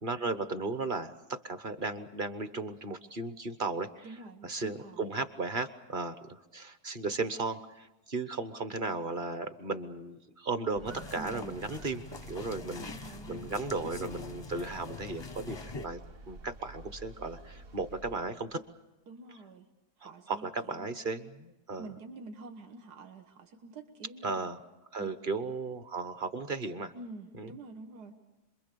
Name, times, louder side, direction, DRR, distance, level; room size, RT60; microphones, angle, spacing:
voice 1, 0.0-4.1 4.4-16.0 16.3-18.6 20.0-21.9 24.2-24.6 24.9-26.9 27.4-27.5, right 3 dB, 35° right, 11 dB, 1.1 m, -35 dB
voice 2, 4.0-5.0 11.2-11.7 12.8-13.6 19.1-19.7 20.0-20.9 21.8-24.5 25.0-25.1 26.9-28.1, right 3 dB, 85° right, 5 dB, 2.0 m, -47 dB
sound 1, 10.7-18.2, right 2 dB, 60° right, 1.9 m, -50 dB
sound 2, 10.9-15.9, left 3 dB, 25° left, 0.5 m, -44 dB
27.0 x 22.5 x 6.8 m, 1.0 s
omnidirectional pair, 1.7 m